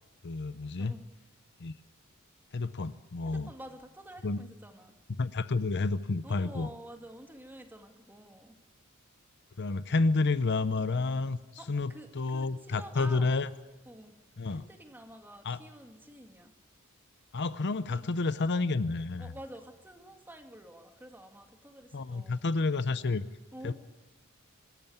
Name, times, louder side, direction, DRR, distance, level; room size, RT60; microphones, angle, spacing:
voice 1, 0.2-0.9 1.6-1.7 2.5-3.5 4.2-4.4 5.2-6.7 9.6-11.4 11.7-13.5 14.4-14.6 15.4-15.6 17.3-19.3 21.9-23.3 23.6-23.7, left 3 dB, 55° left, 14 dB, 0.7 m, -30 dB
voice 2, 3.2-4.9 6.2-8.6 11.6-13.4 13.9-14.2 14.5-16.5 17.9-18.1 19.2-22.3 23.5-23.7, right 1 dB, 10° right, 5 dB, 1.9 m, -49 dB
24.5 x 14.0 x 9.3 m, 1.2 s
head